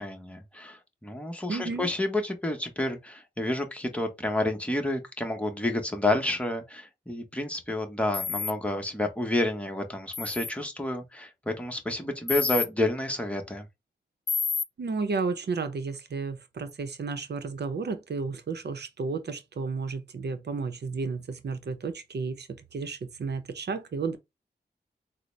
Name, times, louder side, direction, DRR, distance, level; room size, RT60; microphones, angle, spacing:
voice 1, 0.0-13.7, left 1 dB, 5° left, 1.0 m, -30 dB
voice 2, 1.5-1.9 14.8-24.2, right 4 dB, 70° right, 0.7 m, -32 dB
sound 1, 8.1-8.5 10.1-10.5 12.3-12.7 14.3-14.6, left 5 dB, 30° left, 0.4 m, -29 dB
3.8 x 2.0 x 3.2 m
cardioid pair, 55°, 18 cm